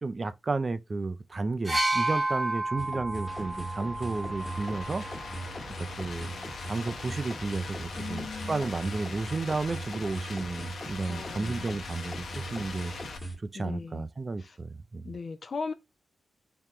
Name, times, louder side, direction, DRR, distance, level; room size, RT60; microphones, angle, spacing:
voice 1, 0.0-5.1 5.7-6.3 6.7-12.9 13.4-15.1, right 3 dB, 30° right, 0.4 m, -33 dB
sound 1, 1.6-5.5 6.5-6.6, right 2 dB, 10° right, 1.1 m, -31 dB
sound 2, 2.8-13.4, right 1 dB, 20° left, 1.3 m, -40 dB
sound 3, 3.2-13.2, left 4 dB, 65° left, 0.8 m, -42 dB
voice 2, 7.9-8.6 11.1-11.7 13.5-14.1 14.4-14.6 15.0-15.7, left 4 dB, 45° left, 0.4 m, -38 dB
3.7 x 2.9 x 3.0 m
wide cardioid pair, 130°, 0 cm